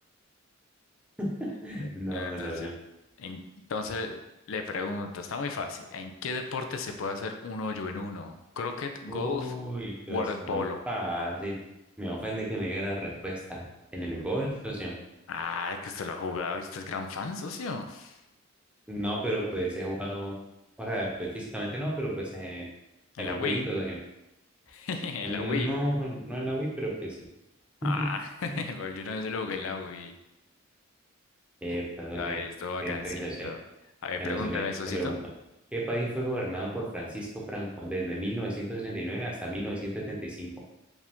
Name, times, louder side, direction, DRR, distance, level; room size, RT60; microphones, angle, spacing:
voice 1, 1.2-2.7 9.1-11.6 12.0-13.7 13.9-15.0 18.9-20.3 20.8-22.7 23.2-24.0 25.2-27.2 27.8-28.1 28.5-28.6 31.6-32.4 32.8-33.5 34.2-35.2 35.7-40.5, right 1 dB, 5° right, -3 dB, 0.8 m, -33 dB
voice 2, 1.8-2.7 3.2-3.4 3.7-4.2 4.5-9.5 10.1-10.8 15.3-18.2 23.1-23.6 24.7-25.7 27.8-30.1 32.2-33.6 34.0-35.1, left 4 dB, 75° left, 5 dB, 0.4 m, -34 dB
5.0 x 2.6 x 3.5 m, 0.92 s
head